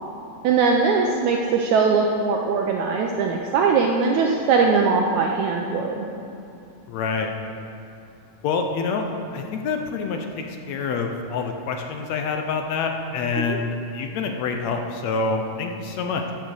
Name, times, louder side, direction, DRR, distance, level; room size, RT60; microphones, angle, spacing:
voice 1, 0.4-6.1 13.4-13.6, right 5 dB, 75° right, 1 dB, 1.9 m, -21 dB
voice 2, 6.9-7.3 8.4-16.3, left 4 dB, 70° left, 4 dB, 1.7 m, -27 dB
15.0 x 7.1 x 6.4 m, 2.7 s
omnidirectional pair, 3.8 m